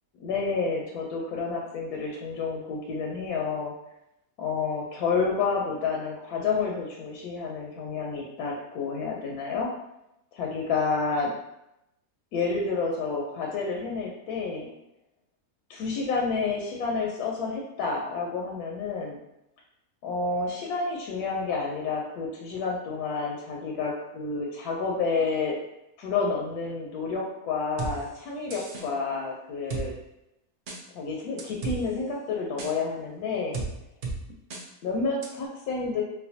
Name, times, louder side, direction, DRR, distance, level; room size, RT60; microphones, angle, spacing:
voice 1, 0.2-3.7 4.4-9.7 10.3-11.3 12.3-14.7 15.7-19.2 20.0-25.6 26.0-29.9 30.9-33.6 34.8-36.0, left 4 dB, 90° left, 0 dB, 1.1 m, -29 dB
sound 1, 27.8-27.9 28.5-28.9 29.7-29.8 30.7-30.8 31.4-31.8 32.6-32.7 33.5-33.7 34.0-34.2 34.5-34.6 35.2-35.3, right 4 dB, 75° right, 0.4 m, -32 dB
4.1 x 2.1 x 2.7 m, 0.86 s
omnidirectional pair, 1.6 m